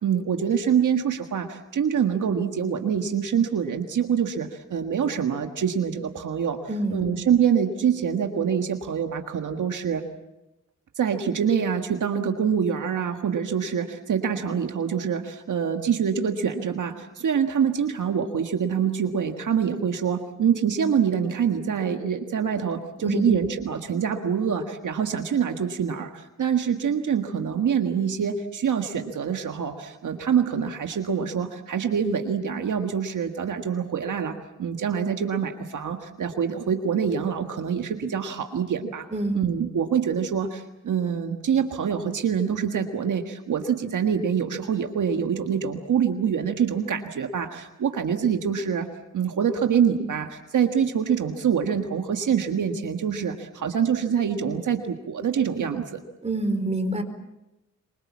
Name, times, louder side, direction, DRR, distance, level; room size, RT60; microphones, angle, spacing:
voice 1, 0.0-6.6 6.9-10.0 11.0-39.0 39.3-48.9 49.1-56.0, right 7 dB, 75° right, 5 dB, 1.7 m, -25 dB
voice 2, 6.7-7.0 23.0-23.3 39.1-39.4 56.2-57.0, right 1 dB, 20° right, 6 dB, 4.3 m, -26 dB
25.0 x 23.5 x 7.4 m, 0.97 s
cardioid pair, 85°, 31 cm